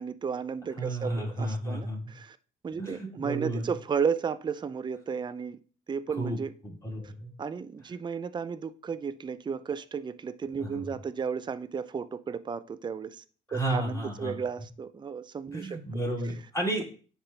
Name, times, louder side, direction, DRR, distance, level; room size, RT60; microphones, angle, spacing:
voice 1, 0.0-2.4 2.6-5.6 5.9-6.5 7.0-7.1 7.4-13.2 13.5-15.8, right 6 dB, 25° right, 0.4 m, -33 dB
voice 2, 0.8-2.1 2.8-3.7 6.2-6.4 6.6-7.3 10.6-10.8 13.5-14.3 15.5-16.8, right 1 dB, 15° left, 2.6 m, -32 dB
9.9 x 3.4 x 2.9 m
cardioid pair, 90°, 20 cm